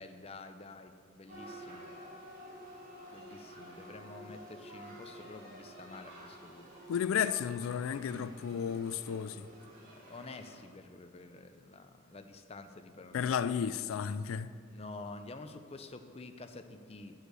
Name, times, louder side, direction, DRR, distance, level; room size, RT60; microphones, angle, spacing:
voice 1, 0.0-1.8 3.1-6.7 9.8-13.6 14.7-17.1, left 3 dB, 30° left, 0.5 m, -49 dB
sound 1, 1.3-10.6, equal, 45° right, 2.9 m, -50 dB
voice 2, 6.9-9.5 13.1-14.5, left 7 dB, 80° left, 0.3 m, -33 dB
7.6 x 6.5 x 8.1 m
head